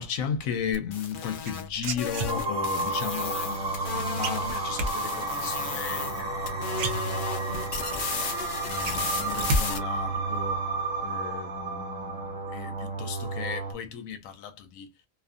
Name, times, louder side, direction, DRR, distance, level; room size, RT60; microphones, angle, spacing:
voice 1, 0.0-7.5 7.9-8.0 8.7-10.6 11.0-14.9, left 7 dB, 85° left, 1.0 m, -35 dB
sound 1, 0.7-4.6 4.9-6.2 6.5-9.8, left 6 dB, 55° left, 0.6 m, -35 dB
sound 2, 1.4-2.8 4.2-4.9 6.3-6.4 6.7-7.6 8.0-8.1 8.4-9.6 9.9-10.4, right 1 dB, 85° right, 1.1 m, -30 dB
sound 3, 2.3-13.7, right 3 dB, 35° right, 1.1 m, -31 dB
2.7 x 2.5 x 2.4 m
omnidirectional pair, 1.4 m